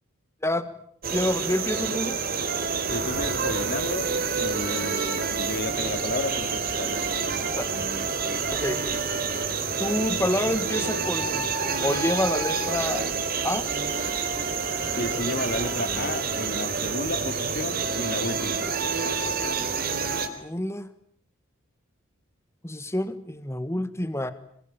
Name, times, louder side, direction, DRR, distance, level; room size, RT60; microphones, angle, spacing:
sound 1, 1.0-20.3, right 5 dB, 45° right, 3.9 m, -28 dB
voice 1, 1.1-2.2 7.6-7.7 8.5-8.8 9.8-11.5 11.8-13.1 13.4-13.7 20.4-20.9 22.6-24.3, left 1 dB, 15° left, 1.5 m, -28 dB
voice 2, 2.9-7.6 14.9-18.6, left 2 dB, 50° left, 3.7 m, -32 dB
27.5 x 23.0 x 9.0 m
head